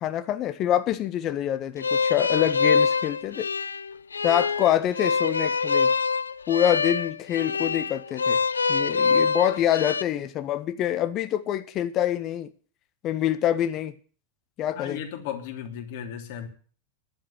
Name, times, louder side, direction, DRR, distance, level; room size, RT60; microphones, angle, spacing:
voice 1, 0.0-3.5 4.2-5.9 6.5-8.4 8.7-12.5 13.0-14.0 14.6-15.0, left 11 dB, 40° left, 1.4 m, -26 dB
sound 1, 1.8-10.0, left 5 dB, 85° left, 0.6 m, -25 dB
voice 2, 14.7-16.5, left 9 dB, 60° left, 3.1 m, -35 dB
11.0 x 7.7 x 10.0 m
hypercardioid pair, 90°, 0 cm